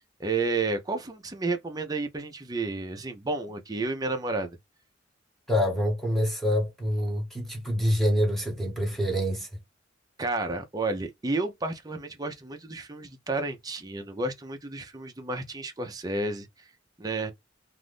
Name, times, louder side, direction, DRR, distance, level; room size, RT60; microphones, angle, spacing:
voice 1, 0.2-4.6 10.2-16.5 17.0-17.3, right 3 dB, 20° right, 0.5 m, -31 dB
voice 2, 5.5-9.5, equal, ahead, 1.1 m, -26 dB
2.5 x 2.5 x 3.4 m
head